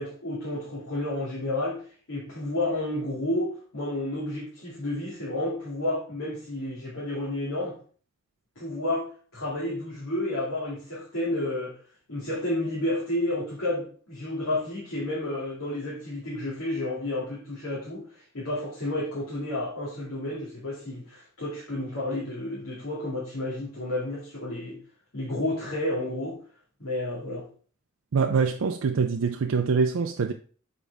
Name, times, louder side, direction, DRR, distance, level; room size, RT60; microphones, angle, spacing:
voice 1, 0.0-1.8 2.1-7.8 8.6-11.8 12.1-24.8 25.1-26.4 26.8-27.4, left 1 dB, 85° left, 2.3 m, -31 dB
voice 2, 28.1-30.3, right 5 dB, 80° right, 0.5 m, -24 dB
7.2 x 4.6 x 3.4 m
head